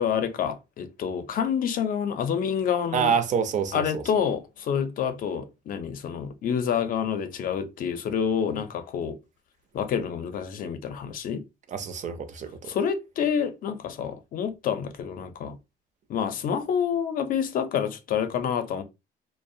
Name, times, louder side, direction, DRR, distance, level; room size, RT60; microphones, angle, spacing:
voice 1, 0.0-3.2 3.7-9.2 9.7-11.4 12.6-15.6 16.1-18.8, left 7 dB, 55° left, 0.5 m, -28 dB
voice 2, 2.9-4.0 11.7-12.7, right 7 dB, 45° right, 0.5 m, -27 dB
2.3 x 2.0 x 2.6 m
cardioid pair, 110°, 17 cm